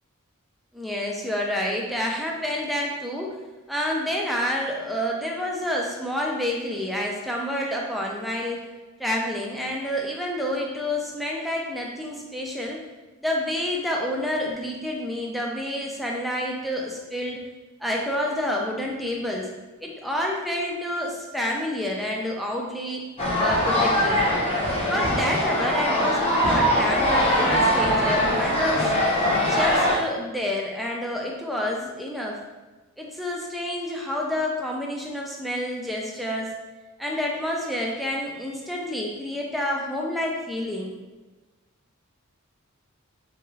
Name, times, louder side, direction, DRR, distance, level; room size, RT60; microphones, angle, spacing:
voice 1, 0.7-3.4 3.7-8.6 9.0-12.8 13.2-17.4 17.8-19.5 19.8-23.0 23.4-24.2 24.9-28.9 29.5-32.4 33.0-36.5 37.0-40.9, left 1 dB, ahead, -2 dB, 0.4 m, -28 dB
sound 1, 23.2-30.0, equal, 25° left, 0.8 m, -22 dB
3.5 x 3.1 x 2.3 m, 1.2 s
head